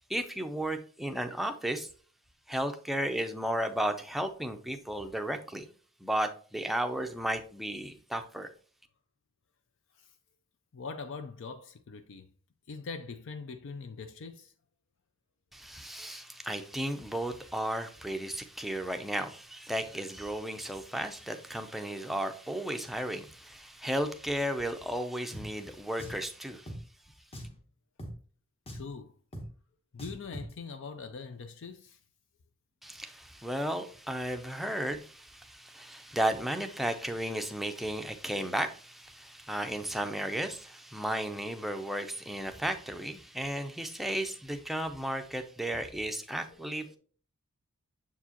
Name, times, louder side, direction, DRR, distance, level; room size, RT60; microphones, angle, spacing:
voice 1, 0.1-1.9 2.5-5.7 6.0-8.5 15.5-26.7 32.8-47.0, right 1 dB, ahead, 0.5 m, -34 dB
voice 2, 10.7-12.3 12.7-14.5 28.7-29.1 29.9-32.0 46.5-46.6 46.9-47.0, left 4 dB, 60° left, 0.5 m, -42 dB
Drum, 25.3-25.5 26.0-26.2 26.7-26.8 27.3-27.6 28.0-28.1 28.7-28.9 29.3-29.5 30.0-30.5, equal, 25° left, 1.0 m, -41 dB
6.9 x 4.7 x 2.8 m
head